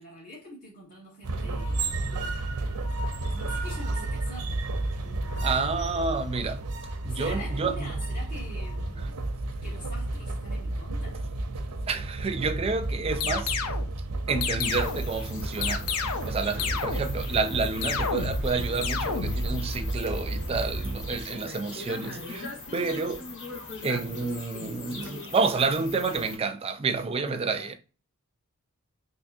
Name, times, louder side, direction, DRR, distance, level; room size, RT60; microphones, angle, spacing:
voice 1, 0.0-2.5 3.4-4.6 5.0-5.5 7.1-9.2 9.6-11.2 27.4-27.7, left 1 dB, 35° left, 1.7 m, -45 dB
sound 1, 1.2-21.2, right 2 dB, 90° right, 0.6 m, -32 dB
voice 2, 5.4-6.7 7.0-7.9 11.9-13.5 14.3-15.9 16.2-22.5 22.7-23.2 23.8-27.7, right 4 dB, 25° right, 0.4 m, -29 dB
sound 2, 13.2-13.9 14.4-15.1 15.6-16.3 16.6-17.2 17.8-18.5 18.8-19.5, left 5 dB, 85° left, 0.5 m, -30 dB
sound 3, 14.6-26.4, left 2 dB, 55° left, 1.1 m, -40 dB
3.5 x 2.9 x 2.7 m
head